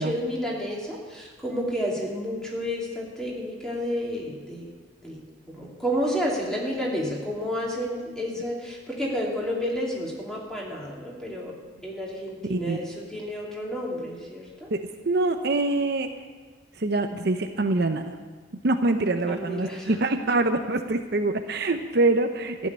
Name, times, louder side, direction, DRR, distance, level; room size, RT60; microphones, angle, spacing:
voice 1, 0.0-4.7 5.0-5.2 5.5-11.5 11.8-14.7 19.3-19.9, equal, 5° left, -4 dB, 2.9 m, -30 dB
voice 2, 14.7-16.1 16.8-18.1 18.6-22.7, right 2 dB, 60° right, 7 dB, 0.7 m, -25 dB
14.5 x 6.5 x 9.6 m, 1.4 s
head